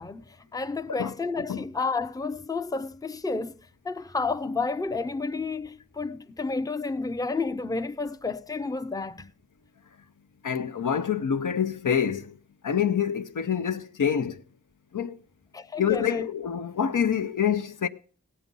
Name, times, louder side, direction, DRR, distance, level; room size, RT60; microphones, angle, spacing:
voice 1, 0.0-3.6 3.8-9.3 15.5-16.3, left 3 dB, 10° left, 0.5 m, -31 dB
voice 2, 10.4-12.4 12.6-14.4 14.9-15.2 15.8-17.9, left 8 dB, 80° left, 0.7 m, -26 dB
17.5 x 8.3 x 5.3 m
wide cardioid pair, 75°, 31 cm